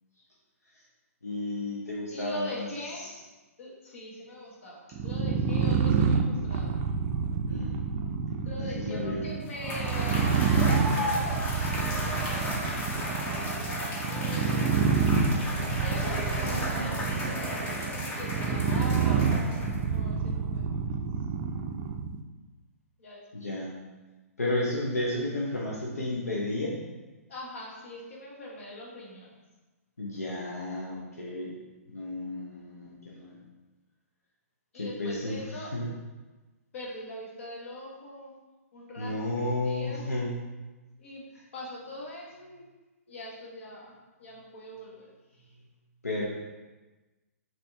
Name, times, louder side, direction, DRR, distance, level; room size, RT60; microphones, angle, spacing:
voice 1, 1.2-2.7 7.4-7.7 8.6-9.2 23.3-23.7 24.4-26.8 30.0-31.5 31.9-33.4 34.7-35.4 35.7-35.9 39.0-40.3 46.0-46.3, left 1 dB, 80° left, -5 dB, 0.9 m, -32 dB
voice 2, 2.1-3.1 3.6-6.7 8.4-11.2 11.7-12.6 14.0-15.1 15.8-17.7 18.1-20.6 23.0-23.3 27.3-29.4 34.7-35.7 36.7-38.4 38.7-40.0 41.0-41.3 41.5-42.7 43.1-45.7, left 1 dB, 55° left, -3 dB, 1.4 m, -42 dB
sound 1, 4.9-22.2, right 5 dB, 30° right, 0.4 m, -28 dB
Cheering / Applause / Crowd, 9.5-19.9, left 1 dB, 20° left, 0.8 m, -34 dB
5.1 x 3.0 x 3.4 m, 1.2 s
figure-of-eight pair, 125°, 8 cm